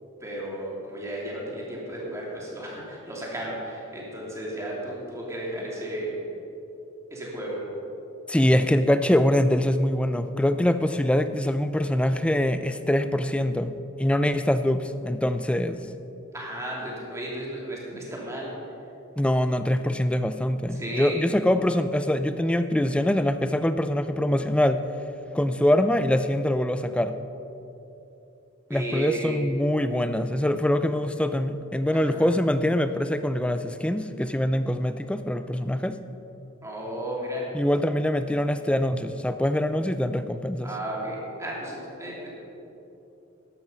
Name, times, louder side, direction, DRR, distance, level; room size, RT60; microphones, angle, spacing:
voice 1, 0.2-6.2 7.1-7.6 16.3-18.5 20.7-21.2 28.7-29.5 31.9-32.3 36.6-37.5 40.6-42.3, right 1 dB, 15° right, -4 dB, 2.8 m, -34 dB
voice 2, 8.3-13.7 14.0-15.9 19.2-24.8 25.3-27.1 28.7-36.0 37.5-40.7, left 1 dB, 5° left, 10 dB, 0.4 m, -24 dB
13.0 x 11.0 x 5.4 m, 2.9 s
head